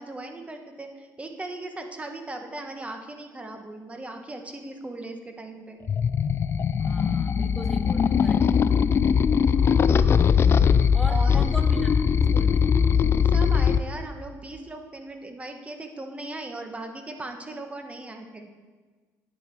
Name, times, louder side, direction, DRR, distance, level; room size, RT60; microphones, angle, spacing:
voice 1, 0.0-5.8 11.1-11.5 13.2-18.5, right 2 dB, 20° right, 5 dB, 1.4 m, -38 dB
sound 1, 5.9-13.8, left 7 dB, 40° left, 0.4 m, -21 dB
voice 2, 6.8-8.8 10.9-11.9 12.3-12.7, equal, ahead, 3 dB, 1.0 m, -38 dB
9.8 x 8.9 x 4.7 m, 1.4 s
cardioid pair, 85°, 6 cm